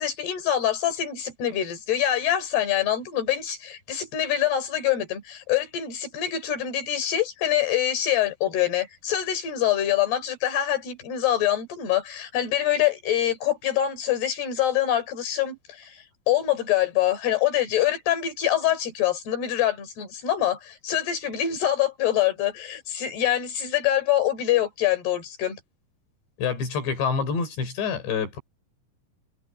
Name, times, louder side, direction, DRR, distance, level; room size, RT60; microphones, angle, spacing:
voice 1, 0.0-25.6, left 11 dB, 70° left, 6.3 m, -25 dB
voice 2, 26.4-28.4, left 5 dB, 85° left, 7.2 m, -27 dB
omnidirectional pair, 4.9 m